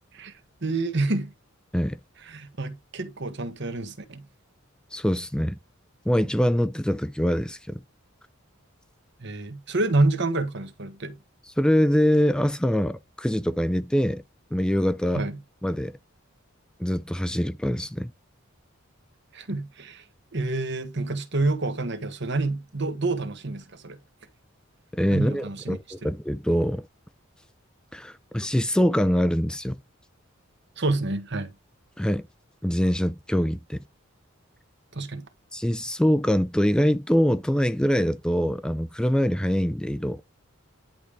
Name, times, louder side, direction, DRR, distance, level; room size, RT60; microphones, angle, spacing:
voice 1, 0.6-1.3 2.2-4.2 9.2-11.2 15.1-15.4 19.3-20.0 20.3-24.0 25.1-26.1 30.8-31.5 34.9-35.3, right 2 dB, 55° right, 1.3 m, -28 dB
voice 2, 4.9-5.6 6.1-7.8 11.6-14.2 14.5-15.2 15.6-16.0 16.8-18.1 24.9-26.9 27.9-29.8 32.0-32.3 32.6-33.8 35.5-40.2, equal, 5° left, 0.4 m, -24 dB
10.5 x 3.6 x 5.0 m
head